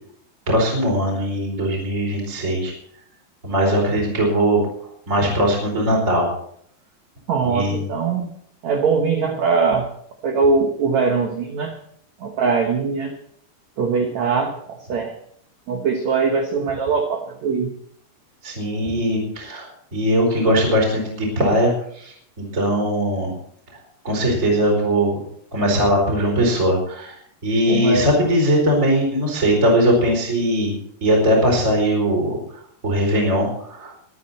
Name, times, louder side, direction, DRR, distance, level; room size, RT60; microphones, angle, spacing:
voice 1, 0.5-2.7 3.4-4.6 5.1-6.3 7.4-7.8 18.4-23.3 24.0-25.2 25.5-27.2 27.4-33.9, equal, 20° right, -1 dB, 4.6 m, -20 dB
voice 2, 7.3-8.3 8.6-9.9 10.2-11.8 12.2-13.1 13.8-15.1 15.7-17.7 27.7-28.1, right 5 dB, 60° right, 3 dB, 1.9 m, -21 dB
23.0 x 9.2 x 4.4 m, 0.66 s
omnidirectional pair, 4.8 m